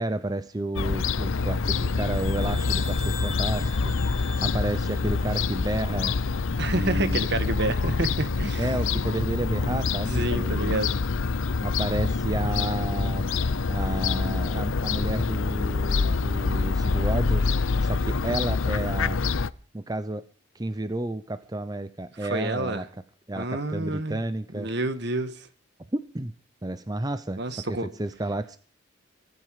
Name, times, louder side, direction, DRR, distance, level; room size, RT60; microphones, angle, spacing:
voice 1, 0.0-6.2 6.7-7.2 8.6-10.8 11.6-13.4 13.7-19.2 19.7-20.2 20.5-22.9 23.3-24.7 25.9-26.3 26.6-28.6, right 1 dB, 20° right, 0.7 m, -31 dB
Fowl / Gull seagull, 0.7-19.5, left 4 dB, 75° left, 0.7 m, -26 dB
sound 1, 1.5-6.0, left 4 dB, 35° left, 5.7 m, -42 dB
voice 2, 6.6-8.7 10.1-10.9 22.2-22.9 23.3-24.2 24.5-25.5 27.4-27.9, right 2 dB, 55° right, 1.7 m, -29 dB
24.0 x 9.4 x 4.9 m
head